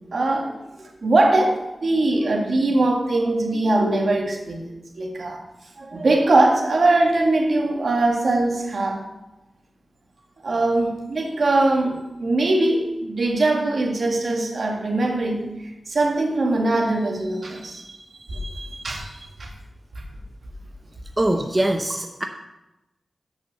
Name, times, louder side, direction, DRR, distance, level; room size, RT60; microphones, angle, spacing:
voice 1, 0.1-0.5 1.0-4.7 5.0-5.4 5.8-9.0 10.4-15.4 15.9-19.5 20.0-20.1, right 2 dB, 65° right, 1 dB, 1.9 m, -21 dB
voice 2, 21.2-22.2, right 1 dB, 20° right, 4 dB, 0.8 m, -22 dB
7.6 x 5.9 x 6.9 m, 0.97 s
wide cardioid pair, 75°, 0 cm